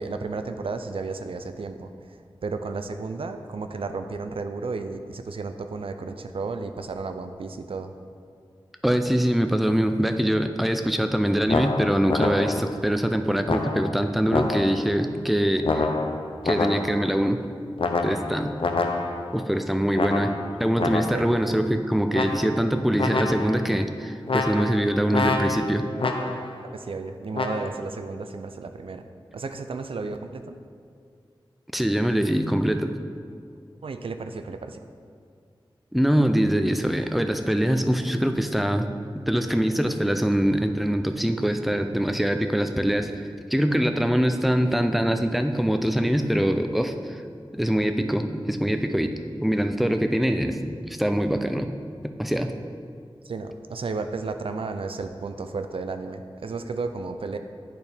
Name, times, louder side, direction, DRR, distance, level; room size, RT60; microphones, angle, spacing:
voice 1, 0.0-2.2 2.4-7.9 21.1-21.3 26.7-29.0 29.3-30.6 33.8-34.8 53.2-57.4, right 4 dB, 80° right, 8 dB, 0.4 m, -33 dB
voice 2, 8.8-15.9 16.4-17.4 18.0-18.5 19.3-20.3 20.6-25.8 31.7-32.9 35.9-38.9 39.3-43.2 43.5-47.2 47.5-50.6 50.9-51.7 52.2-52.5, equal, ahead, 6 dB, 0.4 m, -23 dB
sound 1, 11.5-12.8 13.5-14.9 15.6-17.1 17.8-19.4 19.9-21.4 22.1-22.7 23.0-23.7 24.3-26.6 27.3-27.7, left 3 dB, 75° left, 0.5 m, -27 dB
10.5 x 4.4 x 3.4 m, 2.2 s
wide cardioid pair, 60°, 9 cm